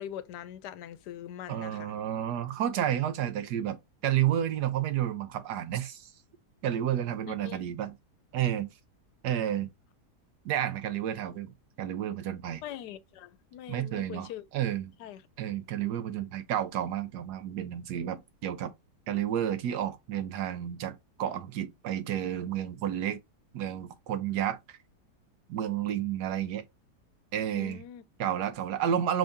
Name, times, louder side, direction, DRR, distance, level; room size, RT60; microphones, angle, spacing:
voice 1, 0.0-1.9 7.3-7.8 12.6-14.5 15.0-15.2 27.5-28.0, left 11 dB, 80° left, 1.2 m, -42 dB
voice 2, 1.5-3.8 4.0-6.1 6.6-7.9 8.3-8.7 9.2-9.7 10.4-11.5 11.8-12.6 13.7-14.9 15.4-18.7 19.1-23.2 23.5-24.8 25.5-26.6 27.3-27.8 28.2-29.2, right 10 dB, 75° right, 1.3 m, -31 dB
5.2 x 2.7 x 3.5 m
omnidirectional pair, 1.8 m